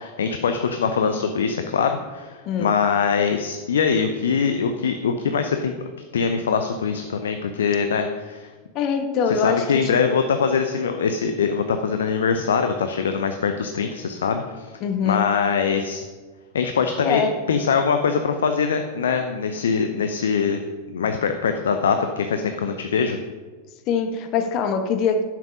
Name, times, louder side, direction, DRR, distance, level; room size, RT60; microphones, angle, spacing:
voice 1, 0.0-5.7 6.1-8.5 9.3-14.7 15.0-16.0 16.5-17.2 17.5-20.6 20.9-23.2, left 6 dB, 65° left, 7 dB, 0.6 m, -23 dB
voice 2, 8.7-10.2 14.8-15.4 17.0-17.4 23.9-25.2, left 6 dB, 40° left, 8 dB, 1.1 m, -23 dB
10.5 x 7.5 x 5.2 m, 1.4 s
figure-of-eight pair, 90°, 0 cm